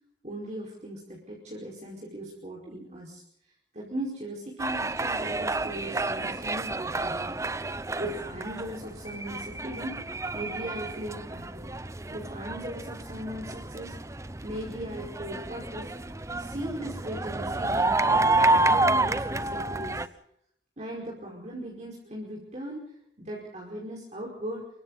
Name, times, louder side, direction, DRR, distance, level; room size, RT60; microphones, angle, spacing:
voice 1, 0.2-3.2 3.7-7.3 8.0-10.0 10.3-11.7 12.1-14.0 14.4-15.9 16.4-20.0 20.8-24.7, right 1 dB, 40° right, -3 dB, 5.1 m, -38 dB
sound 1, 4.6-20.1, right 2 dB, 15° right, 0.7 m, -29 dB
27.5 x 24.0 x 4.1 m, 0.71 s
head